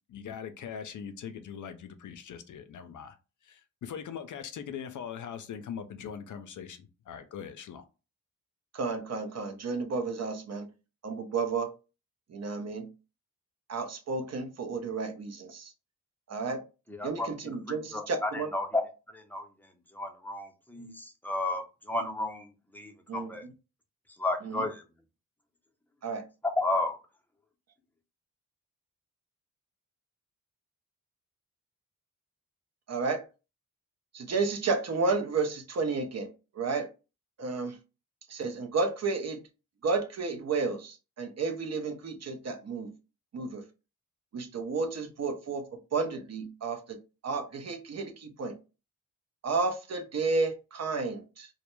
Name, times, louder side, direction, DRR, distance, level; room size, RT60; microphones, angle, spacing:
voice 1, 0.1-3.2 3.4-7.8, left 7 dB, 55° left, 0.5 m, -41 dB
voice 2, 8.7-10.7 11.0-11.8 12.3-12.9 13.7-15.7 16.3-16.6 17.0-18.5 23.1-23.3 24.4-24.6 26.0-26.2 32.9-33.2 34.1-36.3 36.5-36.9 37.4-37.8 38.3-39.4 39.8-42.9 43.3-43.6 44.3-48.6 49.4-51.5, right 4 dB, 45° right, 0.6 m, -32 dB
voice 3, 16.9-18.8 19.1-19.4 19.9-22.5 22.7-23.4 24.2-24.8 26.6-27.0, left 2 dB, 5° left, 0.7 m, -32 dB
2.1 x 2.1 x 3.0 m
supercardioid pair, 40°, 37 cm